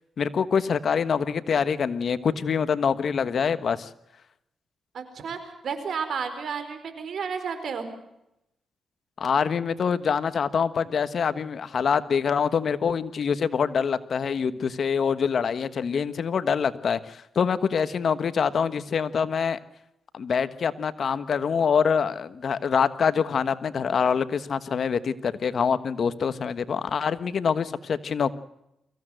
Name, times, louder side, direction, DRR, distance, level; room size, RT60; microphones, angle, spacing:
voice 1, 0.2-3.9 9.2-19.6 20.1-28.3, left 6 dB, 60° left, 13 dB, 1.3 m, -25 dB
voice 2, 4.9-7.9, right 6 dB, 65° right, 9 dB, 4.6 m, -32 dB
24.0 x 16.0 x 7.9 m, 0.84 s
cardioid pair, 85°, 0 cm